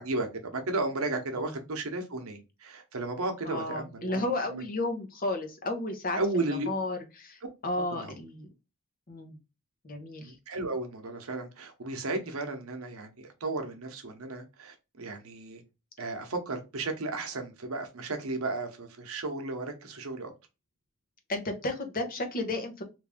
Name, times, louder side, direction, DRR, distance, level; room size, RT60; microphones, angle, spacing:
voice 1, 0.0-4.2 4.5-4.6 6.2-6.7 7.9-8.1 10.2-15.6 16.0-20.3, right 2 dB, 70° right, 5 dB, 0.8 m, -34 dB
voice 2, 3.4-6.2 6.7-8.5 9.1-9.4 9.8-10.3 21.3-22.8, left 2 dB, 40° left, 5 dB, 0.8 m, -33 dB
3.2 x 2.6 x 3.4 m, 0.27 s
head